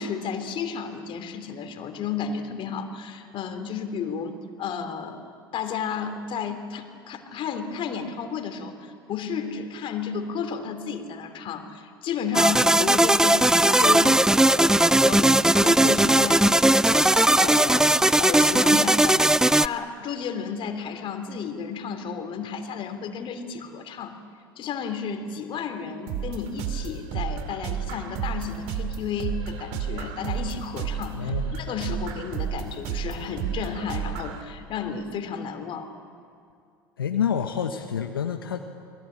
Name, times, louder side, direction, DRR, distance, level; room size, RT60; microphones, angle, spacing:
voice 1, 0.0-5.2 5.5-17.1 17.4-19.3 19.5-24.2 24.5-35.9, left 6 dB, 50° left, 7 dB, 3.5 m, -32 dB
sound 1, 12.3-19.7, right 1 dB, 5° right, 0.5 m, -18 dB
sound 2, 26.1-34.4, right 8 dB, 60° right, 2.7 m, -32 dB
voice 2, 31.1-31.6 37.0-38.6, left 8 dB, 85° left, 5 dB, 1.3 m, -28 dB
28.5 x 22.5 x 8.8 m, 2.4 s
hypercardioid pair, 70°, 12 cm